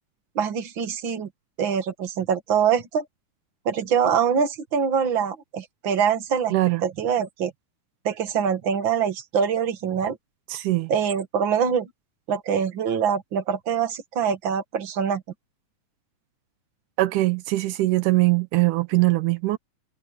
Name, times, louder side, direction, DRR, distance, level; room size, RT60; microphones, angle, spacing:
voice 1, 0.4-1.3 1.6-3.1 3.7-6.5 6.8-7.5 8.0-10.2 10.9-11.9 12.3-15.2, right 7 dB, 45° right, 2.3 m, -24 dB
voice 2, 6.5-6.8 10.5-10.9 17.0-19.6, right 19 dB, 80° right, 2.3 m, -21 dB
omnidirectional pair, 3.6 m